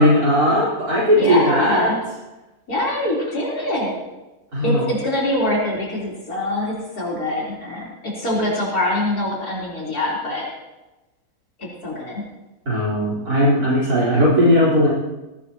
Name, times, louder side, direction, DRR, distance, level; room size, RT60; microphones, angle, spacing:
voice 1, 0.0-1.9 4.5-4.9 12.7-14.9, equal, 70° right, -7 dB, 4.9 m, -17 dB
voice 2, 1.2-2.1 2.7-4.0 4.6-10.5 11.6-12.2, left 1 dB, 75° left, -5 dB, 4.5 m, -24 dB
20.0 x 17.0 x 3.0 m, 1.0 s
omnidirectional pair, 1.6 m